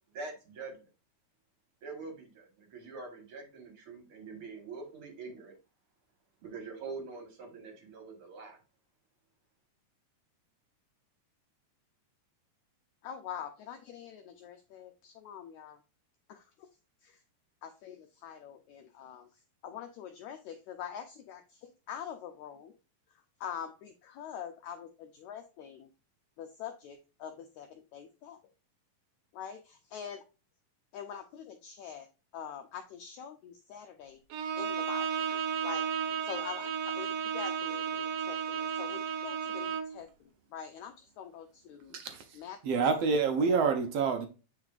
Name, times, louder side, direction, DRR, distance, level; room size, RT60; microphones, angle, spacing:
voice 1, 0.1-0.9 1.8-5.6 6.4-8.6, right 4 dB, 50° right, 4 dB, 1.9 m, -44 dB
voice 2, 13.0-15.8 16.3-16.7 17.0-17.2 17.6-22.7 23.1-25.9 26.4-28.4 29.3-30.2 30.9-32.1 32.3-34.2 34.6-35.2 35.6-35.9 36.2-42.0 42.3-42.6 43.4-43.6, left 8 dB, 75° left, 6 dB, 1.7 m, -44 dB
Bowed string instrument, 34.3-40.0, right 7 dB, 85° right, 2.4 m, -33 dB
voice 3, 41.9-44.3, right 5 dB, 70° right, 6 dB, 1.5 m, -28 dB
8.1 x 5.0 x 2.4 m, 0.32 s
omnidirectional pair, 3.9 m